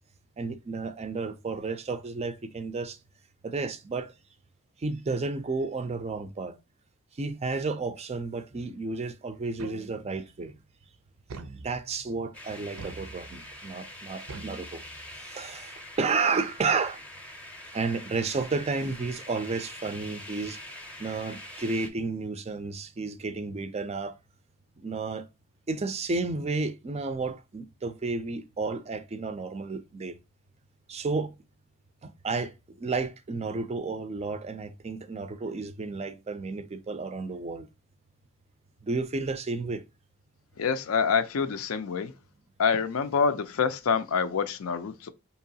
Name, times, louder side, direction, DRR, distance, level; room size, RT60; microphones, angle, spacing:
voice 1, 0.4-3.0 3.4-4.1 4.8-6.6 7.2-10.5 11.5-14.8 15.2-17.0 17.7-20.6 21.0-24.2 24.8-25.3 25.7-30.1 30.9-31.3 32.0-37.7 38.8-39.8, right 4 dB, 30° right, 0.4 m, -32 dB
sound 1, 9.6-10.3 11.3-12.1 12.8-13.6 14.3-15.3, right 3 dB, 85° right, 0.5 m, -44 dB
sound 2, 12.3-21.9, left 1 dB, 5° left, 0.6 m, -44 dB
voice 2, 40.6-42.1 42.6-45.1, left 6 dB, 75° left, 0.4 m, -26 dB
4.5 x 2.9 x 2.7 m
head